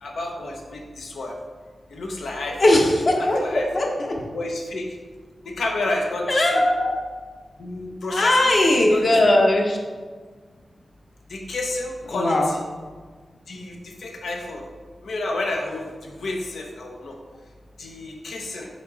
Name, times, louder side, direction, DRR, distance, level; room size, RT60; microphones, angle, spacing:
voice 1, 0.0-1.3 1.9-2.8 3.1-3.7 4.3-5.0 5.4-6.6 7.6-9.3 11.3-12.6 13.5-14.6 15.0-17.2 17.8-18.7, left 2 dB, 85° left, 1 dB, 0.9 m, -30 dB
voice 2, 2.6-4.1 6.3-6.9 8.1-9.8 12.1-12.5, left 1 dB, 45° left, 0 dB, 1.1 m, -19 dB
5.4 x 5.1 x 4.0 m, 1.5 s
wide cardioid pair, 125°, 0 cm